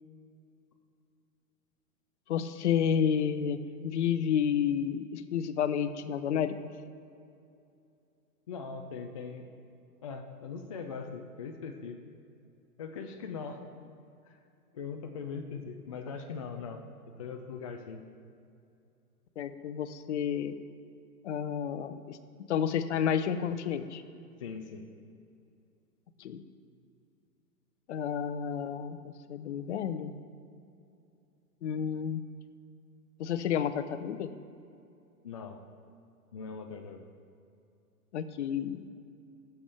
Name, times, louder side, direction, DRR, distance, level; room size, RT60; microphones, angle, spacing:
voice 1, 2.3-6.6 19.4-20.5 21.2-22.2 22.5-24.0 26.2-26.4 27.9-29.0 29.3-30.1 31.6-32.2 33.2-34.3 38.1-38.9, left 8 dB, 50° left, 11 dB, 0.7 m, -30 dB
voice 2, 8.5-9.5 10.0-12.0 12.8-13.6 14.3-14.4 14.7-16.8 17.2-18.0 24.4-24.9 35.2-35.6 36.3-37.0, left 5 dB, 25° left, 3 dB, 0.4 m, -40 dB
17.0 x 7.0 x 3.5 m, 2.6 s
figure-of-eight pair, 110°, 46 cm